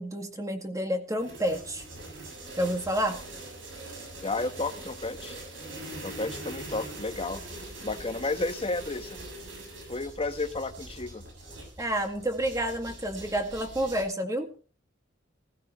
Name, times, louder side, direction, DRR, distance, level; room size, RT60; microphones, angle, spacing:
voice 1, 0.0-1.8 2.6-3.2 11.8-14.5, equal, 15° right, 5 dB, 2.1 m, -29 dB
sound 1, 1.2-14.0, right 2 dB, 70° right, 7.1 m, -42 dB
voice 2, 4.2-5.4 6.0-7.4 7.8-9.2 9.9-11.2, left 3 dB, 30° left, 8 dB, 1.3 m, -32 dB
16.5 x 15.5 x 3.2 m, 0.39 s
head